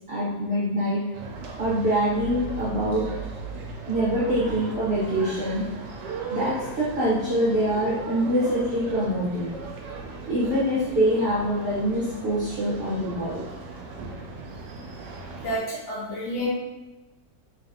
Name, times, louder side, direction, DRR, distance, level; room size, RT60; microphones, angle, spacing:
voice 1, 0.1-1.1 1.6-3.1 3.9-5.7 6.0-9.6 10.3-13.5, equal, 40° right, -9 dB, 0.9 m, -25 dB
sound 1, 1.1-15.6, right 4 dB, 80° right, 1.3 m, -37 dB
voice 2, 15.4-16.5, equal, 50° left, -6 dB, 1.2 m, -30 dB
3.9 x 3.2 x 2.7 m, 1.1 s
omnidirectional pair, 1.9 m